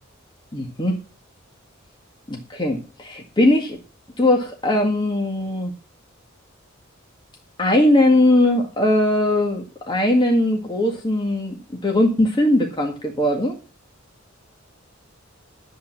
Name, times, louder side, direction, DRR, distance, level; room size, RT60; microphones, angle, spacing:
voice 1, 0.5-1.0 2.3-3.8 4.2-5.7 7.6-13.6, left 1 dB, 25° left, 1 dB, 1.8 m, -20 dB
10.5 x 8.4 x 5.9 m, 0.34 s
head